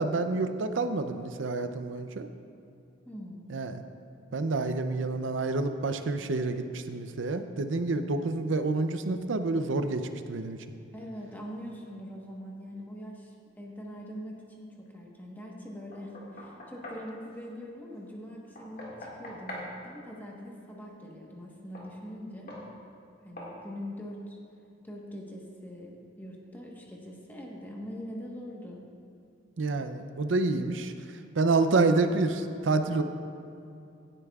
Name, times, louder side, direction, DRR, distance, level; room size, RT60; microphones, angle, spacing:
voice 1, 0.0-2.3 3.5-3.8 4.3-10.6 29.6-30.9 31.3-33.0, right 3 dB, 80° right, 8 dB, 0.6 m, -28 dB
voice 2, 3.0-3.5 10.9-22.6 23.2-24.4 24.8-28.9, equal, 10° left, -2 dB, 1.2 m, -43 dB
Knock, 15.9-17.1 18.6-19.7 21.7-21.9 22.5-22.7 23.4-23.6, left 1 dB, 50° left, 2.0 m, -42 dB
16.5 x 9.9 x 2.4 m, 2.6 s
head